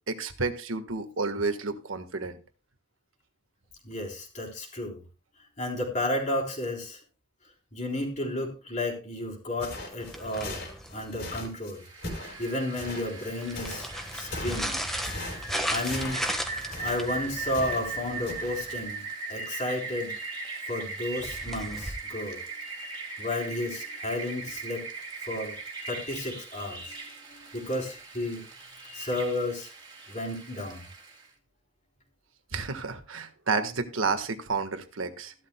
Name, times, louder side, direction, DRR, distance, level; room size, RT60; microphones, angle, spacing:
voice 1, 0.1-2.4 32.5-35.3, right 4 dB, 85° right, 8 dB, 1.4 m, -30 dB
voice 2, 3.8-5.0 5.6-7.0 7.7-10.6 10.9-11.8 12.4-14.8 15.7-20.1 20.7-22.4 23.2-24.9 25.3-25.5 25.9-28.4 28.9-29.7 30.1-30.8, left 1 dB, 35° left, 0 dB, 3.6 m, -32 dB
sound 1, 9.6-17.9 18.3-18.5, left 2 dB, 60° left, 4.2 m, -40 dB
sound 2, 10.0-11.2 13.3-18.9 21.2-21.9, equal, ahead, 1.3 m, -36 dB
Rain, 11.8-31.3, right 4 dB, 20° right, 2.5 m, -39 dB
15.0 x 12.0 x 2.2 m, 0.32 s
head